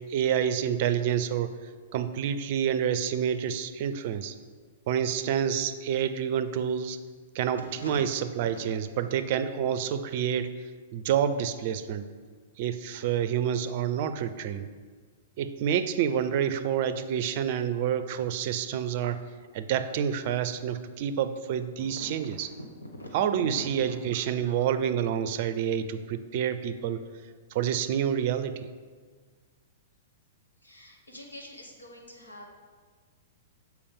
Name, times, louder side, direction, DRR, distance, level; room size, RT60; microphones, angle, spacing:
voice 1, 0.1-4.3 4.9-7.0 7.3-12.1 12.6-14.7 15.4-19.2 19.5-22.5 23.1-27.0 27.5-28.7, right 9 dB, 50° right, 11 dB, 0.5 m, -28 dB
voice 2, 7.5-8.0 8.5-8.6 21.8-21.9 22.9-24.0 30.6-32.5, equal, 85° left, 0 dB, 1.2 m, -43 dB
6.9 x 4.6 x 5.3 m, 1.5 s
figure-of-eight pair, 110°, 0 cm